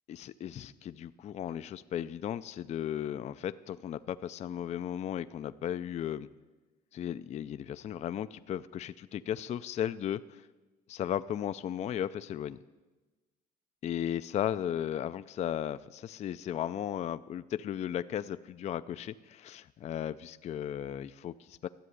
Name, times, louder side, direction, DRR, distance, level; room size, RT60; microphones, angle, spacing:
voice 1, 0.1-6.3 6.9-10.5 10.9-12.6 13.8-21.7, left 10 dB, 40° left, 14 dB, 0.4 m, -35 dB
13.0 x 7.6 x 9.4 m, 1.2 s
cardioid pair, 110°, 17 cm